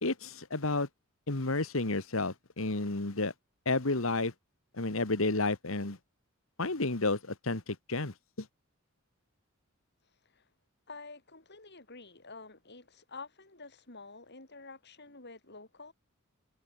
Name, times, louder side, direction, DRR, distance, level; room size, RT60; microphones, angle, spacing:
voice 1, 0.0-0.9 1.3-3.3 3.7-4.3 4.7-6.0 6.6-8.5, left 2 dB, 70° left, 1.9 m, -31 dB
voice 2, 10.9-15.9, left 3 dB, 55° left, 7.9 m, -49 dB
head